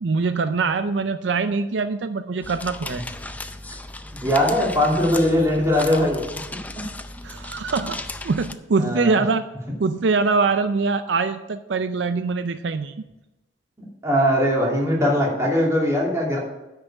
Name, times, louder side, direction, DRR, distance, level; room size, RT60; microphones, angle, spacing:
voice 1, 0.0-3.0 7.2-9.4 9.8-13.0, right 4 dB, 75° right, 10 dB, 0.5 m, -23 dB
sound 1, 2.4-8.5, left 2 dB, 10° left, 0.5 m, -36 dB
voice 2, 4.2-6.2 8.8-9.2 14.0-16.4, left 1 dB, 15° right, -3 dB, 2.7 m, -20 dB
9.8 x 5.6 x 7.1 m, 0.99 s
head